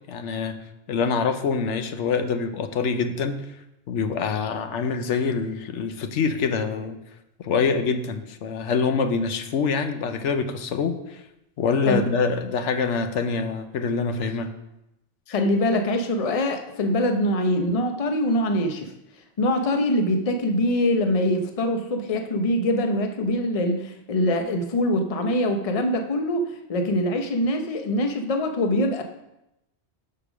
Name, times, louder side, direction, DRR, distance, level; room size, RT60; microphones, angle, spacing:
voice 1, 0.1-0.5 0.9-3.4 3.9-7.0 7.4-11.2 11.6-14.5, left 5 dB, 85° left, 8 dB, 1.0 m, -25 dB
voice 2, 15.3-18.9 19.4-29.0, left 1 dB, 35° left, 5 dB, 0.7 m, -23 dB
6.7 x 4.9 x 6.1 m, 0.89 s
omnidirectional pair, 1.2 m